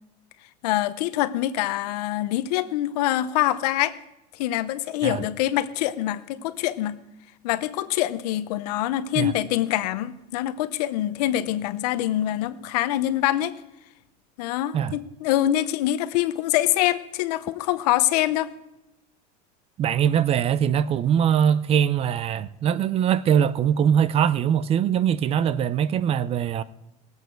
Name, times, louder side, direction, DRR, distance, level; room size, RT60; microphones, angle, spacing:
voice 1, 0.6-4.0 4.3-7.0 7.4-13.6 14.4-18.5, left 13 dB, 85° left, 0.8 m, -25 dB
voice 2, 19.8-26.6, right 9 dB, 30° right, 0.5 m, -22 dB
20.5 x 8.2 x 4.6 m
supercardioid pair, 140°, 20 cm